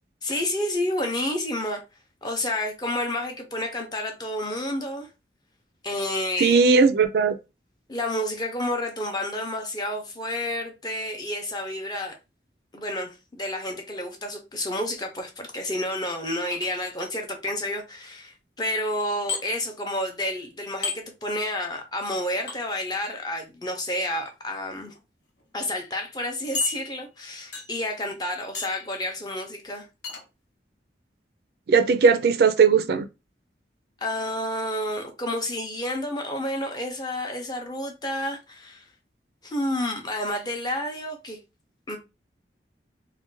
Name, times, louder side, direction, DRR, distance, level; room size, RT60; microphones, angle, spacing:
voice 1, 0.2-1.8 2.2-5.1 5.8-6.6 7.9-12.2 12.7-24.9 25.5-29.9 34.0-38.9 39.4-41.4 41.9-42.0, left 1 dB, 20° left, 0.5 m, -30 dB
voice 2, 6.4-7.4 31.7-33.0, right 5 dB, 60° right, 0.3 m, -18 dB
sound 1, 16.5-17.1 19.3-19.4 20.8-21.0 22.5-22.6 23.9-24.2 24.9-25.0 25.4-25.5 26.5-27.2 27.5-27.9 28.5-28.9 30.0-30.2, left 4 dB, 70° left, 0.8 m, -33 dB
2.5 x 2.2 x 3.8 m
head